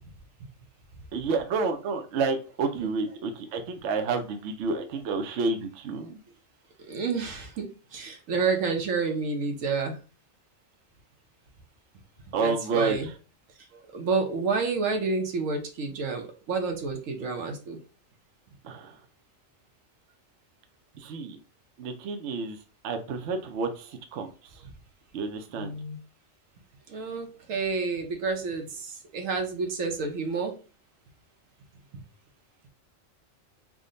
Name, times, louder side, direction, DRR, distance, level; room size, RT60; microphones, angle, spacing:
voice 1, 1.1-6.2 12.3-13.0 18.6-18.9 21.0-21.4 21.8-22.6 22.8-24.3 25.1-25.7, right 4 dB, 70° right, 5 dB, 0.8 m, -29 dB
voice 2, 6.9-10.0 12.4-13.1 13.7-17.8 25.6-26.0 26.9-30.6, right 4 dB, 85° right, 4 dB, 1.1 m, -29 dB
3.6 x 2.2 x 3.7 m, 0.35 s
omnidirectional pair, 1.3 m